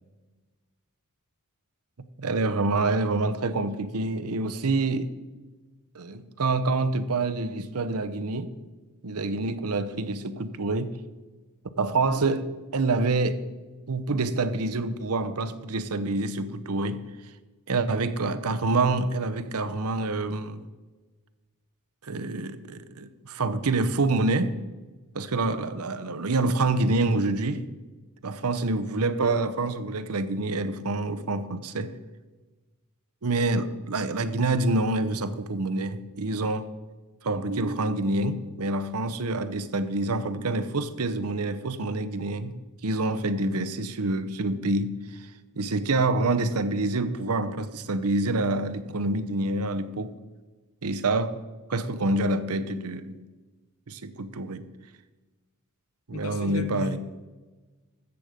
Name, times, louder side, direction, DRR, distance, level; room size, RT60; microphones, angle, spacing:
voice 1, 2.2-5.1 5.9-8.5 9.0-11.0 11.8-13.4 13.9-17.0 17.7-20.6 22.0-24.6 25.1-27.6 28.2-31.9 33.2-36.7 37.2-42.6 42.8-45.3 45.6-50.1 50.8-51.3 51.7-53.2 53.9-54.7 56.1-57.0, right 2 dB, 75° right, 0.8 m, -27 dB
voice 2, 56.1-57.0, left 2 dB, 70° left, 1.1 m, -34 dB
14.0 x 7.9 x 5.1 m
head